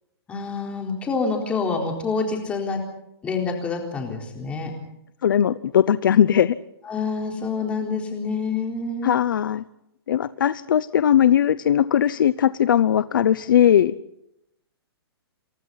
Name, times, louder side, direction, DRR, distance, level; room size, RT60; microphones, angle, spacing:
voice 1, 0.3-2.8 3.2-4.7 6.8-9.2, left 4 dB, 10° left, 1 dB, 4.0 m, -27 dB
voice 2, 5.2-6.6 9.0-9.6 10.1-13.9, left 10 dB, 55° left, 15 dB, 0.8 m, -19 dB
28.0 x 27.5 x 4.1 m, 0.81 s
hypercardioid pair, 175°, 14 cm